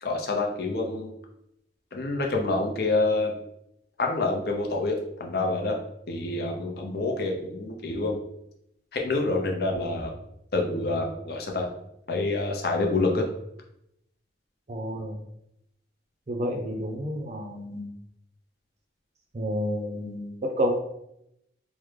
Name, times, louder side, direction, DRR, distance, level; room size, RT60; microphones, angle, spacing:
voice 1, 0.0-1.1 1.9-3.3 4.0-5.8 6.1-8.2 8.9-10.1 10.5-11.7 12.1-13.2, left 2 dB, 55° left, 1 dB, 0.5 m, -27 dB
voice 2, 14.7-15.2 16.3-17.9 19.3-20.7, equal, 35° right, 2 dB, 0.5 m, -30 dB
3.5 x 2.1 x 3.1 m, 0.78 s
head